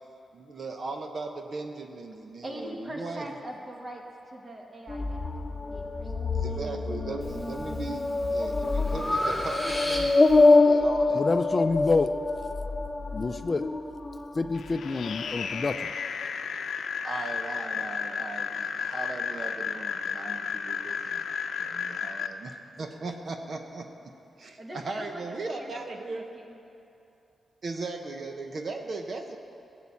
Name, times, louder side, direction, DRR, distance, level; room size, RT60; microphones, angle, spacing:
voice 1, 0.3-3.2 6.3-11.2 11.5-11.6 17.0-21.2 21.6-23.9 24.4-26.3 27.6-29.4, right 3 dB, 55° right, 4 dB, 0.9 m, -38 dB
voice 2, 2.4-5.3 5.7-6.2 24.6-25.3 25.5-26.6, right 1 dB, 30° right, 0 dB, 2.0 m, -41 dB
sound 1, 4.9-14.8 15.1-15.8, left 3 dB, 15° left, 1.1 m, -25 dB
Breathing, 7.2-7.7 8.2-10.4, left 1 dB, ahead, 3.0 m, -32 dB
voice 3, 11.1-12.1 13.1-13.6 14.3-15.9, left 3 dB, 35° left, 9 dB, 0.5 m, -27 dB
sound 2, 14.5-22.3, left 6 dB, 80° left, 0.6 m, -33 dB
16.5 x 7.3 x 8.4 m, 2.8 s
wide cardioid pair, 105°, 0 cm